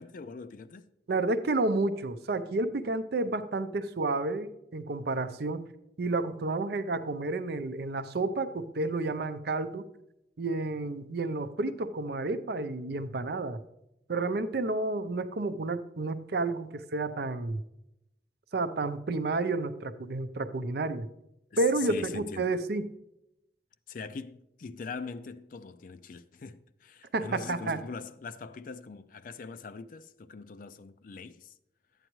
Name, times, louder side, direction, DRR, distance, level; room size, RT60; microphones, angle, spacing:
voice 1, 0.0-0.9 21.5-22.5 23.9-31.5, left 5 dB, 50° left, 0.4 m, -42 dB
voice 2, 1.1-5.7 6.0-9.9 10.4-13.6 14.1-17.6 18.5-21.1 21.6-22.9 27.1-27.8, right 2 dB, 60° right, 0.5 m, -30 dB
12.0 x 9.0 x 3.1 m
head